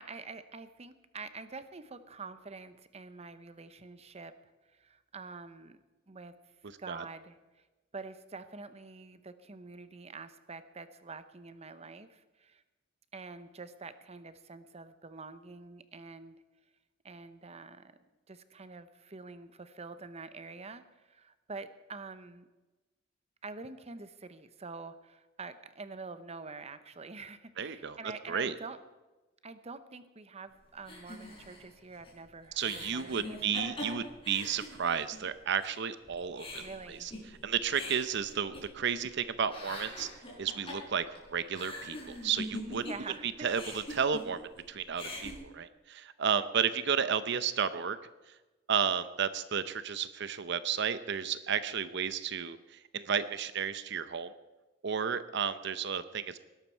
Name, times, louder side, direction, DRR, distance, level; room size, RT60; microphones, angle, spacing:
voice 1, 0.0-6.4 6.6-7.6 7.9-12.6 13.1-16.3 17.0-18.0 18.3-22.5 23.4-28.8 29.4-33.4 36.6-37.1 42.7-43.5, right 4 dB, 35° right, 12 dB, 0.9 m, -46 dB
voice 2, 27.6-28.5 32.6-37.1 37.4-40.1 40.4-41.0 41.3-42.8 43.2-48.0 48.3-48.4 48.7-54.3 54.8-56.4, right 7 dB, 65° right, 13 dB, 0.7 m, -32 dB
sound 1, 30.8-35.3 35.6-35.7 36.0-39.1 39.4-43.2 43.4-44.6 44.9-45.3, left 1 dB, 30° left, 5.0 m, -43 dB
20.0 x 11.5 x 4.6 m, 1.1 s
head